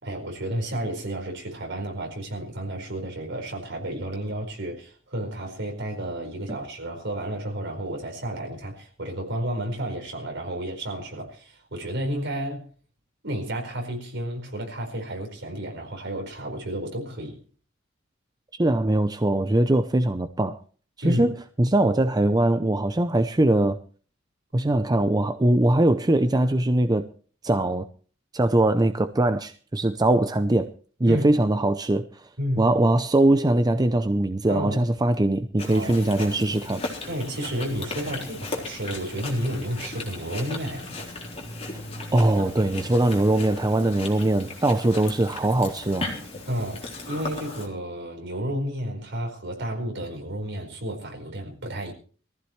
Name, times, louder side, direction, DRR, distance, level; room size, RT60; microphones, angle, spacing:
voice 1, 0.0-12.6 13.2-17.4 21.0-21.3 31.0-31.3 32.4-32.7 34.5-34.9 35.7-36.6 37.1-41.0 46.4-51.9, right 1 dB, 60° right, 4.8 m, -31 dB
voice 2, 18.5-20.6 21.0-23.8 24.5-27.1 27.4-27.9 28.3-30.7 31.0-32.3 32.6-36.8 42.1-46.1, right 1 dB, 20° right, 0.6 m, -21 dB
Chewing mastication, 35.6-47.7, left 2 dB, 30° left, 3.8 m, -37 dB
22.0 x 15.0 x 3.2 m
head